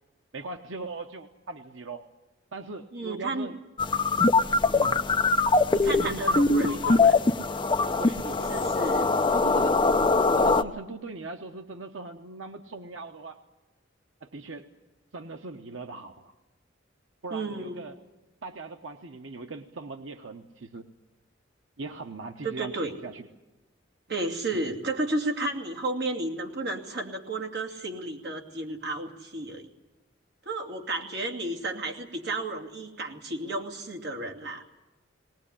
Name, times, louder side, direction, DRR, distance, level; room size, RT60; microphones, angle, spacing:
voice 1, 0.3-2.1 2.5-3.6 4.7-5.0 5.7-7.1 8.0-8.6 9.3-9.8 10.4-13.4 14.2-14.7 15.1-16.3 17.2-18.0 18.4-20.9 21.8-23.3 24.5-24.6, right 3 dB, 90° right, 5 dB, 1.0 m, -39 dB
voice 2, 2.9-3.5 5.8-7.1 8.5-9.1 17.3-17.8 22.4-22.9 24.1-29.7 30.5-34.6, right 2 dB, 60° right, 2 dB, 2.6 m, -32 dB
sound 1, 3.8-10.6, left 3 dB, 25° left, 0.7 m, -22 dB
19.5 x 19.5 x 10.0 m, 1.1 s
head